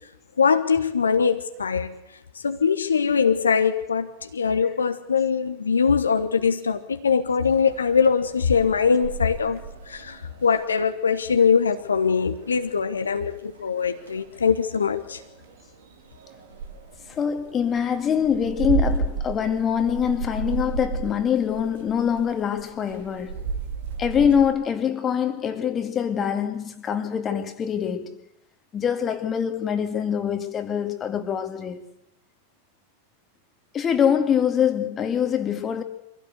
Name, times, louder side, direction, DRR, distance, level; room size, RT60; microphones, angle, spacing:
voice 1, 0.4-1.9 2.3-15.2, left 6 dB, 75° left, 1.2 m, -22 dB
sound 1, 7.4-24.5, right 5 dB, 55° right, 2.3 m, -34 dB
voice 2, 17.1-23.5 24.0-28.2 28.7-31.8 33.7-35.8, left 8 dB, 25° left, 2.1 m, -24 dB
24.5 x 16.5 x 8.1 m
figure-of-eight pair, 90°, 0 cm